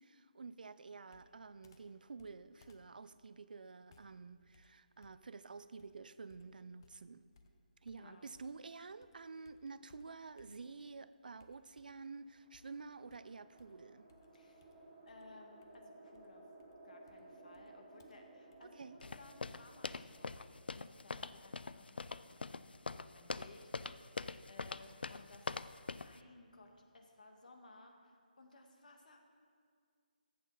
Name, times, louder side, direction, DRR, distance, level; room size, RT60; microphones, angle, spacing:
voice 1, 0.0-7.2 7.8-14.1 18.6-19.0, right 4 dB, 60° right, 0.5 m, -50 dB
Computer keyboard, 1.1-8.7 9.0-10.9 11.4-12.1 12.5-20.5, left 2 dB, 25° left, 0.7 m, -69 dB
voice 2, 7.9-8.3 14.3-14.7 15.1-16.5 16.8-24.1 24.5-29.2, left 2 dB, 55° left, 1.6 m, -60 dB
sound 1, 12.0-22.3, right 2 dB, 15° right, 1.2 m, -60 dB
sound 2, 19.0-26.2, left 4 dB, 85° left, 0.4 m, -44 dB
14.5 x 8.4 x 3.9 m
hypercardioid pair, 170°, 5 cm